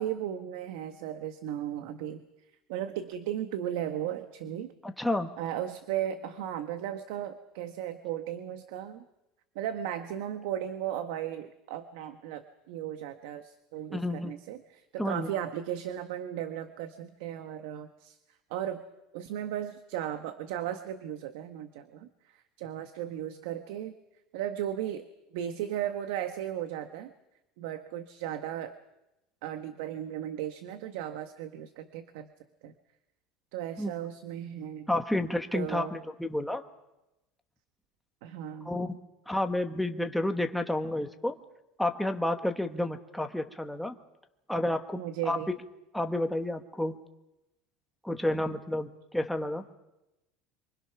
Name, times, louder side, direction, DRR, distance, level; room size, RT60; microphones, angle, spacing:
voice 1, 0.0-2.2 2.7-4.7 5.4-9.0 9.5-18.2 18.5-18.8 19.1-22.1 22.6-23.9 24.3-25.1 25.3-27.1 27.6-28.8 29.4-32.3 32.6-32.7 33.5-34.9 35.5-35.9 38.2-38.7 44.9-45.5, right 11 dB, 70° right, 9 dB, 1.3 m, -36 dB
voice 2, 4.8-5.3 13.9-14.3 15.0-15.3 33.8-33.9 34.9-36.6 38.6-39.0 39.3-41.3 41.8-43.9 44.5-45.4 45.9-47.0 48.0-49.7, left 1 dB, ahead, 5 dB, 1.3 m, -30 dB
27.5 x 24.5 x 6.0 m, 0.92 s
cardioid pair, 170°, 0 cm